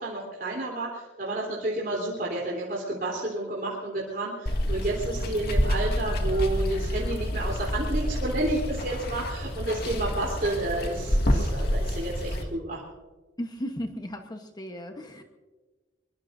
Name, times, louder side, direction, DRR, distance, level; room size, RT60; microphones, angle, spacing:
voice 1, 0.0-12.8, right 2 dB, 50° right, -3 dB, 3.6 m, -30 dB
Water, 4.5-12.4, equal, 55° left, 2.2 m, -28 dB
voice 2, 13.4-15.2, equal, 20° left, 5 dB, 1.1 m, -35 dB
23.0 x 23.0 x 2.7 m, 1.2 s
head